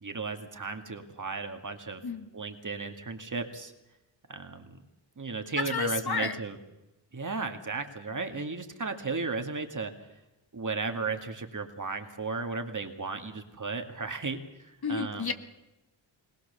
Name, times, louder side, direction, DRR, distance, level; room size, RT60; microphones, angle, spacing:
voice 1, 0.0-2.0 2.3-3.7 4.3-4.8 5.2-6.6 7.1-9.9 10.5-14.4 14.9-15.3, right 4 dB, 40° right, 6 dB, 2.3 m, -35 dB
voice 2, 5.6-6.4 14.8-15.3, left 5 dB, 50° left, 7 dB, 1.8 m, -31 dB
21.0 x 19.5 x 7.0 m, 0.97 s
cardioid pair, 70°, 47 cm